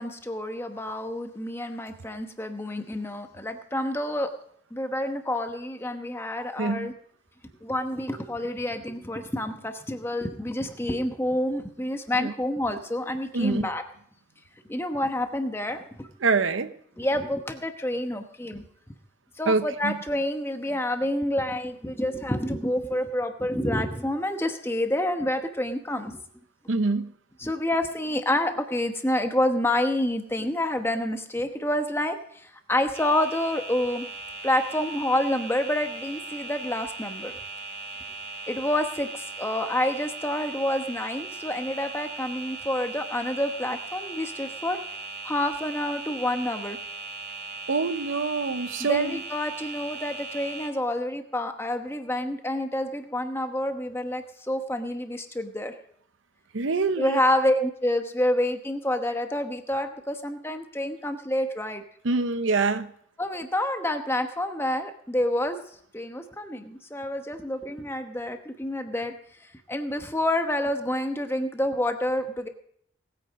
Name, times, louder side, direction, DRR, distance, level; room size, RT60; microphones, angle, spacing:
voice 1, 0.0-4.3 4.7-6.9 7.6-13.8 14.7-16.1 17.0-18.6 19.4-26.2 27.4-34.0 34.4-37.3 38.5-44.8 45.2-46.8 48.8-55.7 57.0-61.8 63.2-65.6 65.9-69.1 69.7-72.5, left 1 dB, 10° left, 6 dB, 1.0 m, -28 dB
voice 2, 6.6-6.9 12.2-12.3 13.3-13.7 16.2-16.7 19.5-20.0 26.7-27.1 47.7-49.2 56.5-57.2 62.0-62.9, right 4 dB, 75° right, 12 dB, 0.8 m, -25 dB
sound 1, 32.9-50.7, right 3 dB, 55° right, 2.9 m, -38 dB
19.0 x 9.0 x 5.2 m, 0.66 s
head